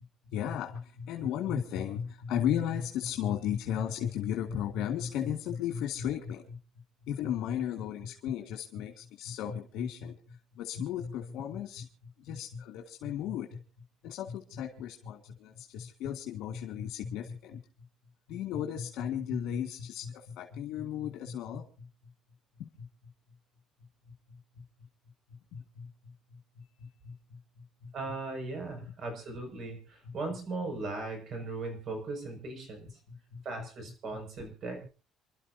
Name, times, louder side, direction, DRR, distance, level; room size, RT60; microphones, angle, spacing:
voice 1, 0.3-6.6 7.0-13.6 14.0-17.6 18.3-21.9 22.6-22.9 24.1-24.6 25.5-27.9 28.8-28.9 30.0-30.1 33.1-33.7, left 9 dB, 75° left, 4 dB, 1.9 m, -35 dB
voice 2, 27.9-33.0 33.4-34.9, right 3 dB, 55° right, 5 dB, 6.1 m, -38 dB
29.0 x 12.5 x 2.7 m, 0.34 s
cardioid pair, 125°, 0 cm